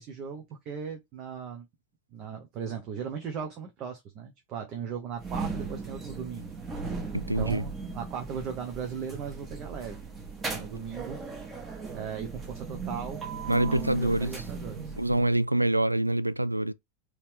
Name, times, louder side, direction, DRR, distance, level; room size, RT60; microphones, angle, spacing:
voice 1, 0.0-1.7 2.1-6.6 7.3-10.1 10.5-11.2 11.9-13.2 13.5-14.9, right 7 dB, 35° right, 0.9 m, -37 dB
sound 1, 5.2-15.4, right 4 dB, 20° right, 1.4 m, -37 dB
voice 2, 7.1-7.6 13.5-14.4 15.0-16.7, right 1 dB, 85° right, 0.3 m, -25 dB
4.2 x 3.1 x 3.5 m
figure-of-eight pair, 90°, 0 cm